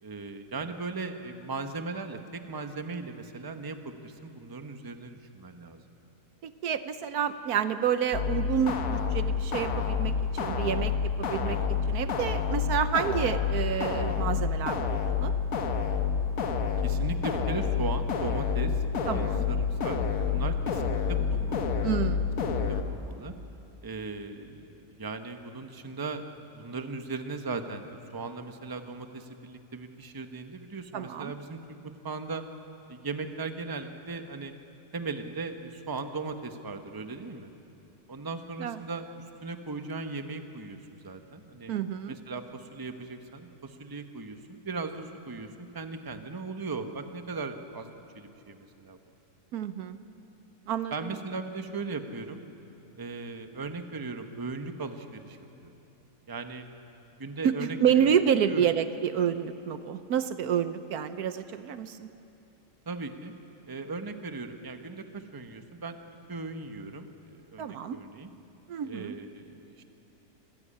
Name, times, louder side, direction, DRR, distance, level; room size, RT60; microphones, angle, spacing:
voice 1, 0.0-5.8 11.4-11.7 16.5-21.9 22.7-23.3 23.8-26.2 26.5-32.4 32.9-34.5 34.9-37.5 38.1-39.1 39.4-41.7 42.1-49.0 50.9-52.4 53.0-55.7 56.3-56.7 57.2-58.2 58.5-58.7 62.9-63.3 63.7-68.3 68.8-69.8, right 3 dB, 15° right, 7 dB, 0.9 m, -38 dB
voice 2, 6.4-15.3 19.1-19.5 21.8-22.3 30.9-31.3 38.6-38.8 41.7-42.1 49.5-50.0 50.7-51.1 57.4-62.1 67.6-68.0 68.7-69.2, right 8 dB, 75° right, 11 dB, 1.2 m, -29 dB
sound 1, 8.1-22.8, left 6 dB, 60° left, 1.5 m, -28 dB
25.5 x 15.5 x 8.7 m, 2.9 s
omnidirectional pair, 1.7 m